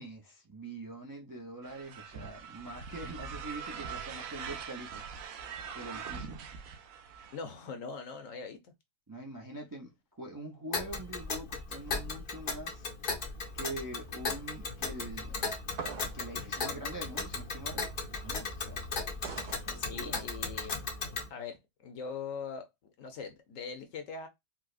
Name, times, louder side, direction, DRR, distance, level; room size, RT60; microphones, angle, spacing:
voice 1, 0.0-5.0 5.7-6.4 9.1-12.9 13.5-15.3 16.1-18.9 19.6-20.3, right 1 dB, 30° right, 0.3 m, -44 dB
sound 1, 1.6-7.4, right 6 dB, 70° right, 1.0 m, -42 dB
voice 2, 7.3-8.7 19.7-20.8 21.3-24.3, left 5 dB, 60° left, 1.1 m, -42 dB
Tick, 10.7-21.3, left 4 dB, 45° left, 0.7 m, -37 dB
sound 2, 15.7-16.3 19.2-19.6, right 5 dB, 50° right, 0.7 m, -41 dB
4.6 x 2.1 x 2.4 m
omnidirectional pair, 1.6 m